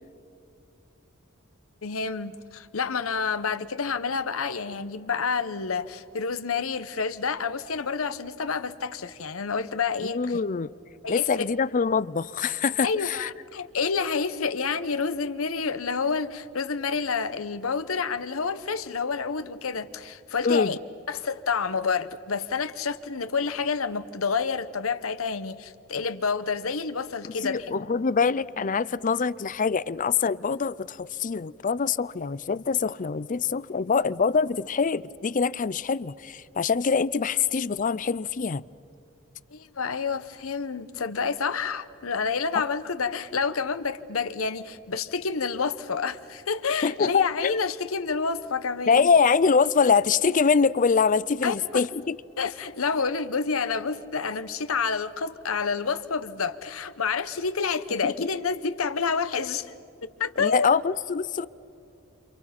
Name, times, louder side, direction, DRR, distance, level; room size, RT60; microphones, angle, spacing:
voice 1, 1.8-10.4 11.0-11.4 12.8-20.8 21.1-27.7 39.5-49.1 51.4-51.8 52.4-59.7 60.0-60.7, left 5 dB, 90° left, 1.0 m, -29 dB
voice 2, 10.0-10.7 11.1-13.3 20.4-20.7 27.3-38.6 46.8-47.6 48.9-52.2 58.0-58.3 60.4-61.5, left 5 dB, 40° left, 0.5 m, -24 dB
29.5 x 27.5 x 5.9 m
head